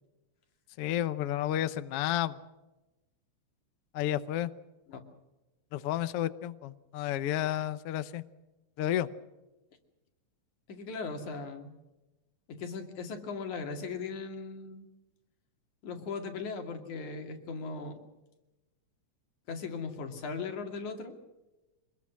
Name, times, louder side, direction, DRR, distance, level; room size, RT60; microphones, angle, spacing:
voice 1, 0.8-2.4 3.9-4.5 5.7-8.2 8.8-9.1, left 12 dB, 65° left, 13 dB, 1.6 m, -31 dB
voice 2, 10.7-11.7 12.5-14.9 15.8-18.0 19.5-21.2, left 4 dB, 85° left, 5 dB, 3.8 m, -38 dB
25.0 x 21.0 x 6.2 m, 1.0 s
omnidirectional pair, 3.3 m